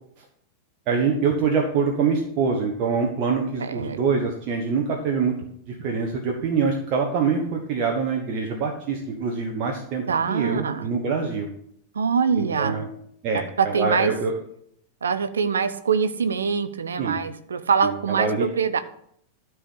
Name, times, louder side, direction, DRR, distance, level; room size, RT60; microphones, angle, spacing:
voice 1, 0.9-5.3 5.7-11.5 12.4-12.9 13.2-14.3 17.0-17.2 17.8-18.5, right 5 dB, 40° right, 1 dB, 1.2 m, -25 dB
voice 2, 3.6-4.0 10.1-10.9 11.9-12.8 13.6-14.1 15.0-18.8, right 6 dB, 70° right, 12 dB, 0.7 m, -24 dB
12.5 x 4.8 x 5.5 m, 0.69 s
figure-of-eight pair, 90°, 0 cm